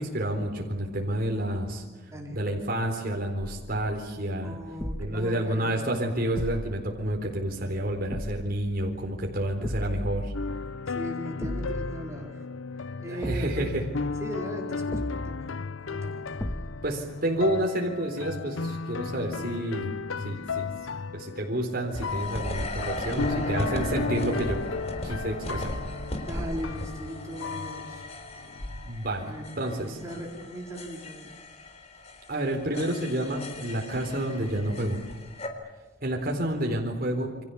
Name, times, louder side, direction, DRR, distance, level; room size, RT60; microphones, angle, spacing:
voice 1, 0.0-1.8 2.3-4.6 5.0-10.3 13.1-13.8 16.8-19.9 20.2-20.7 21.1-24.6 25.0-25.7 28.9-30.0 32.3-35.0 36.0-37.4, right 1 dB, 50° right, 1 dB, 4.1 m, -29 dB
voice 2, 2.1-2.4 4.4-5.9 10.9-12.4 12.7-13.7 14.2-16.3 23.1-23.7 26.2-28.1 28.4-28.6 29.2-31.3, equal, 15° right, -1 dB, 4.6 m, -39 dB
sound 1, 3.4-4.2 4.8-5.4 6.4-7.4 8.1-8.7 9.6-10.7 11.4-12.0 13.2-14.3 14.9-15.6 16.4-17.0, equal, 10° left, 1.6 m, -36 dB
sound 2, 10.3-28.9, left 4 dB, 85° left, 0.7 m, -35 dB
sound 3, 21.9-35.5, left 1 dB, 35° left, 3.8 m, -37 dB
29.5 x 25.0 x 7.1 m, 1.3 s
head